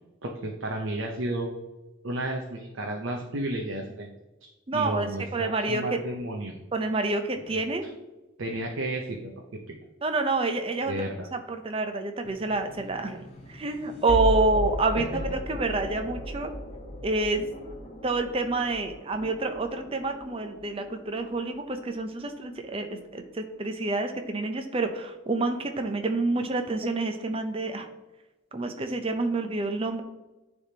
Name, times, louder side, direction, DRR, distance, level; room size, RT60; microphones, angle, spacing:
voice 1, 0.2-1.5 2.0-4.1 4.7-6.6 7.5-7.6 8.4-9.8 10.9-11.3, right 1 dB, 70° right, 1 dB, 0.7 m, -32 dB
voice 2, 4.7-6.0 6.7-7.9 10.0-16.5 17.0-17.4 18.0-27.9 28.5-30.0, right 3 dB, 25° right, 6 dB, 0.5 m, -28 dB
sound 1, 12.2-23.3, equal, 30° left, 0.8 m, -36 dB
9.8 x 3.5 x 2.8 m, 1.1 s
head